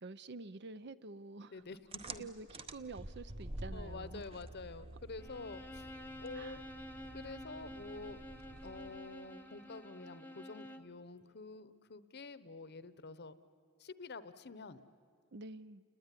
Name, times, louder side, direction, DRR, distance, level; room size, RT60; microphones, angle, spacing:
voice 1, 0.0-1.5 2.2-4.2 6.3-6.6 15.3-15.8, right 3 dB, 50° right, 0.6 m, -48 dB
voice 2, 1.5-2.2 3.7-5.8 6.2-6.6 7.1-8.2 8.6-13.4 13.8-14.8, left 3 dB, 50° left, 0.9 m, -48 dB
sound 1, 1.9-9.1, right 2 dB, 25° right, 0.9 m, -49 dB
Bowed string instrument, 5.2-11.0, equal, 10° left, 0.9 m, -50 dB
29.5 x 20.0 x 10.0 m
head